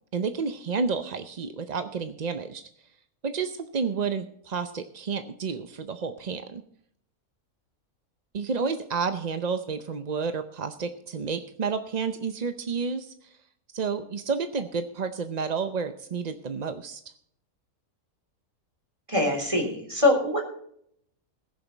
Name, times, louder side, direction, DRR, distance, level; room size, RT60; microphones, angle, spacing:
voice 1, 0.1-2.6 3.2-6.6 8.3-13.1 13.7-17.0, right 5 dB, 45° right, 9 dB, 0.5 m, -30 dB
voice 2, 19.1-20.4, left 2 dB, 20° right, 1 dB, 3.5 m, -23 dB
20.5 x 7.1 x 4.0 m, 0.68 s
omnidirectional pair, 1.5 m